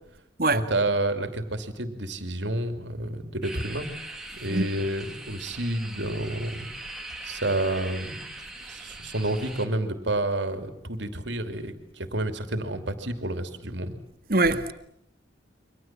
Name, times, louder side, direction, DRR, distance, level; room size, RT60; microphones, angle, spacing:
voice 1, 0.5-3.9 4.4-6.7 7.2-8.2 8.7-13.9, right 1 dB, 70° right, 2.9 m, -29 dB
sound 1, 3.4-9.7, right 2 dB, 5° right, 2.9 m, -41 dB
voice 2, 14.3-14.7, right 2 dB, 50° right, 1.9 m, -23 dB
29.5 x 24.5 x 7.5 m
head